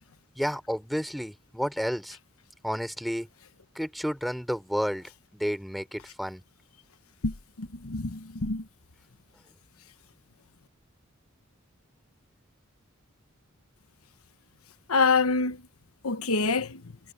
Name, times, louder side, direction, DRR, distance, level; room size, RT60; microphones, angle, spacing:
voice 1, 0.4-2.2 2.6-3.3 3.7-6.4, equal, ahead, 5.9 m, -31 dB
voice 2, 7.6-8.6 14.9-15.6 16.0-16.8, left 4 dB, 85° left, 1.1 m, -26 dB
head